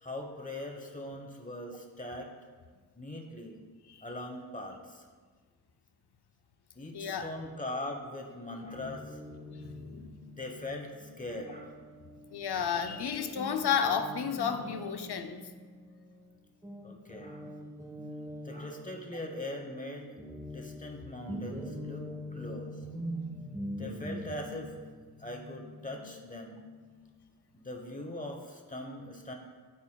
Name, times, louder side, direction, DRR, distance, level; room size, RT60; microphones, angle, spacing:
voice 1, 0.0-2.3 3.0-3.6 4.0-5.0 6.7-9.2 10.3-11.8 16.8-17.5 18.4-20.1 20.4-22.9 23.7-24.8 25.2-26.6 27.5-29.3, left 1 dB, 20° left, 2 dB, 1.1 m, -41 dB
voice 2, 6.9-7.3 8.6-8.7 9.4-10.2 12.0-15.4, left 7 dB, 75° left, 7 dB, 0.6 m, -32 dB
Guitar, 8.6-16.3 16.6-27.1, equal, 5° right, 0.6 m, -44 dB
12.0 x 4.3 x 2.3 m, 1.5 s
wide cardioid pair, 45°, 40 cm